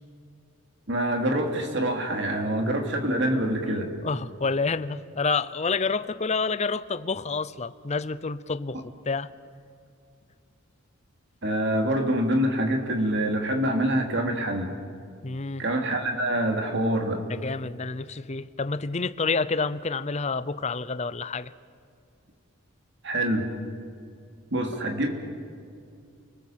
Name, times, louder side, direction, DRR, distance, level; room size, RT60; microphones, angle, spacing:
voice 1, 0.9-3.9 11.4-14.7 15.6-17.2 23.0-23.5 24.5-25.1, right 1 dB, 55° right, 3 dB, 3.0 m, -25 dB
voice 2, 4.0-9.3 15.2-15.6 17.3-21.5, left 4 dB, 30° left, 14 dB, 0.6 m, -28 dB
30.0 x 19.5 x 7.6 m, 2.4 s
head